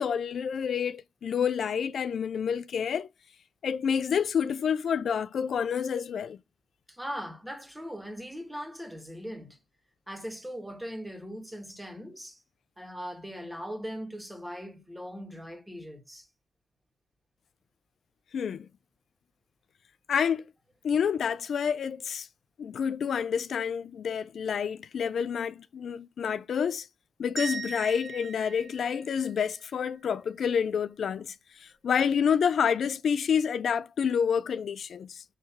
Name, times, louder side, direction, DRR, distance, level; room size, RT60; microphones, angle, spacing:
voice 1, 0.0-3.1 3.6-6.4 18.3-18.7 20.1-20.5 20.8-22.3 22.6-26.9 27.2-35.2, left 7 dB, 65° left, 0.3 m, -28 dB
voice 2, 6.9-9.6 10.1-12.4 12.8-16.3, equal, 5° right, 1.8 m, -40 dB
sound 1, 27.4-29.6, right 5 dB, 55° right, 1.7 m, -39 dB
6.5 x 3.1 x 5.7 m
cardioid pair, 75°, 0 cm